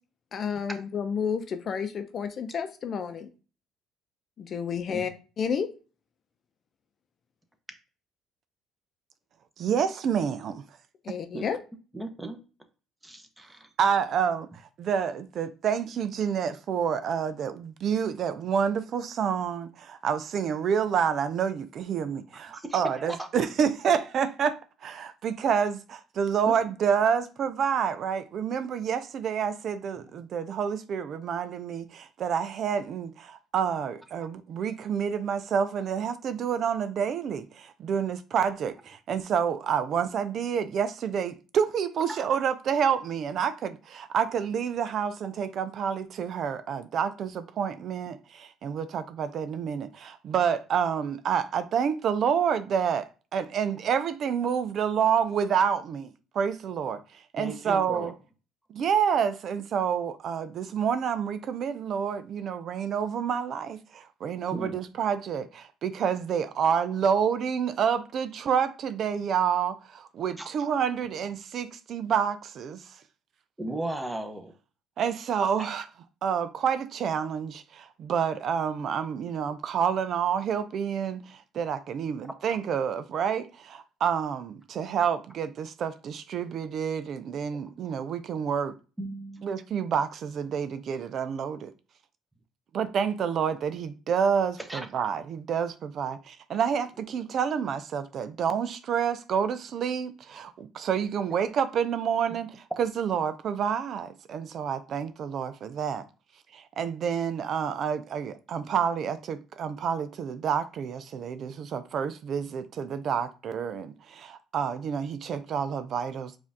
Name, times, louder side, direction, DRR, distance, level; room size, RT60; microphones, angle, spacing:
voice 1, 0.3-3.3 4.4-5.7 11.0-11.6, left 6 dB, 50° left, 0.7 m, -31 dB
voice 2, 9.6-10.6 11.1-11.2 13.8-24.6 24.8-58.1 58.7-73.0 75.0-75.9 76.2-88.8 89.4-91.7 92.7-106.0 106.5-116.4, right 7 dB, 55° right, 0.4 m, -28 dB
voice 3, 11.9-12.4 13.0-13.7 22.5-23.3 26.5-26.6 42.1-42.2 57.4-58.1 64.5-64.8 70.4-70.5 73.6-74.5 89.0-89.5 94.7-94.9, right 1 dB, 10° right, 0.9 m, -36 dB
4.9 x 2.6 x 3.5 m
supercardioid pair, 85°, 0 cm